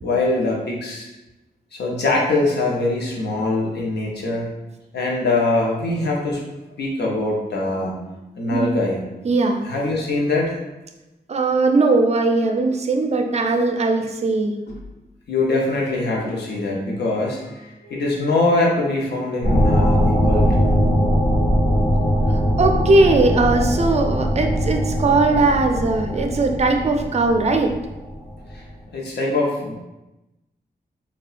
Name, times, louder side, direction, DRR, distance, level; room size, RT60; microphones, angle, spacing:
voice 1, 0.0-1.1 1.7-4.5 4.9-6.4 6.8-8.1 8.3-9.0 9.6-10.6 15.3-20.6 28.5-28.6 28.9-29.7, left 2 dB, 90° left, -2 dB, 0.7 m, -22 dB
voice 2, 9.2-9.6 11.3-14.5 22.6-27.7, right 3 dB, 40° right, 4 dB, 0.4 m, -19 dB
sound 1, 19.4-28.6, equal, 70° left, 1.3 m, -20 dB
3.6 x 2.2 x 2.4 m, 1.0 s
wide cardioid pair, 75°, 17 cm